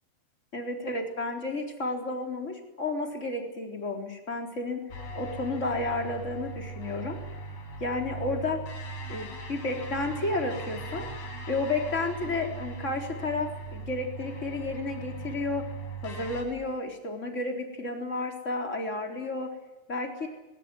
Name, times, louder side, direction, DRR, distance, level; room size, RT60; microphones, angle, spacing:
voice 1, 0.5-4.8 5.2-7.2 7.8-8.6 9.1-11.1 11.5-15.6 16.0-19.5 19.9-20.3, left 2 dB, 20° left, 2 dB, 3.9 m, -32 dB
sound 1, 4.9-16.4, right 3 dB, 75° left, 6.1 m, -39 dB
21.5 x 19.5 x 9.8 m, 1.1 s
omnidirectional pair, 4.8 m